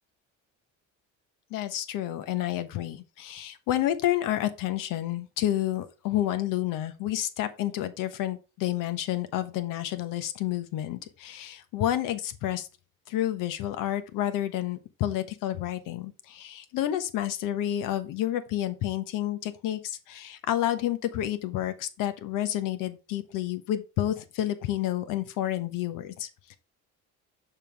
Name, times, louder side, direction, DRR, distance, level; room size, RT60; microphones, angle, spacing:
voice 1, 1.5-12.7 13.1-26.6, left 13 dB, 75° left, 1.2 m, -30 dB
6.7 x 5.7 x 3.5 m
cardioid pair, 110°, 33 cm